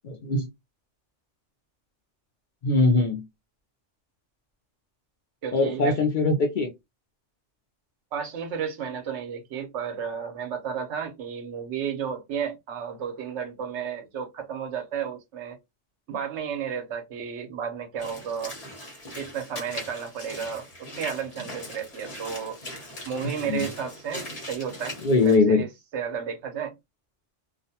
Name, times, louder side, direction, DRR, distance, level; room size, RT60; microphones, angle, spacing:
voice 1, 0.0-0.4 2.6-3.2 5.5-6.7 23.5-23.6 25.0-25.6, left 3 dB, 55° left, 0.6 m, -21 dB
voice 2, 5.4-6.0 8.1-15.6 16.1-18.6 19.2-22.6 23.1-25.7 25.9-26.8, right 7 dB, 75° right, 0.9 m, -33 dB
Walk footsteps / Splash splatter, 18.0-25.4, left 1 dB, 35° left, 1.0 m, -40 dB
2.4 x 2.1 x 2.7 m
omnidirectional pair, 1.2 m